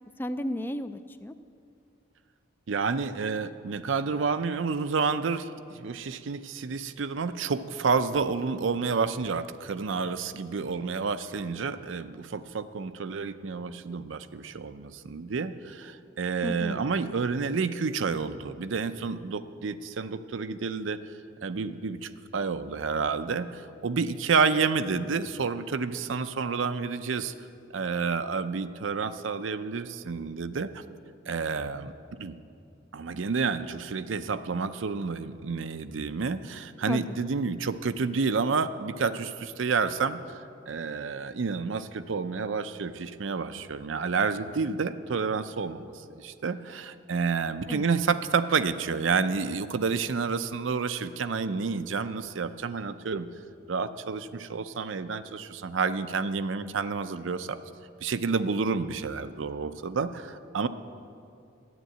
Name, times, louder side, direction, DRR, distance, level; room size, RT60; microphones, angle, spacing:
voice 1, 0.2-1.3 16.4-16.8 36.9-37.2 47.7-47.9, left 1 dB, 10° left, 11 dB, 0.3 m, -33 dB
voice 2, 2.7-21.1 21.4-27.3 27.7-30.8 31.3-31.9 32.2-32.4 32.9-53.3 53.7-57.6 58.0-60.7, right 5 dB, 75° right, 11 dB, 0.5 m, -29 dB
11.0 x 8.9 x 9.0 m, 2.5 s
head